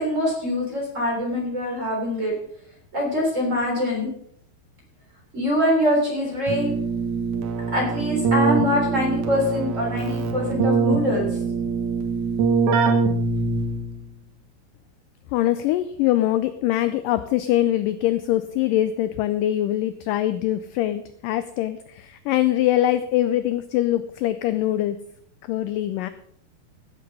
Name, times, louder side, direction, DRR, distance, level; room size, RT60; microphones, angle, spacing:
voice 1, 0.0-2.3 2.9-4.1 5.3-6.7 7.7-11.3, left 1 dB, 20° right, -1 dB, 3.6 m, -24 dB
Keyboard (musical), 6.5-14.0, right 4 dB, 60° right, 2.6 m, -23 dB
voice 2, 15.3-25.0 25.5-26.1, left 13 dB, 85° left, 12 dB, 1.9 m, -23 dB
15.5 x 7.8 x 5.3 m, 0.67 s
omnidirectional pair, 4.4 m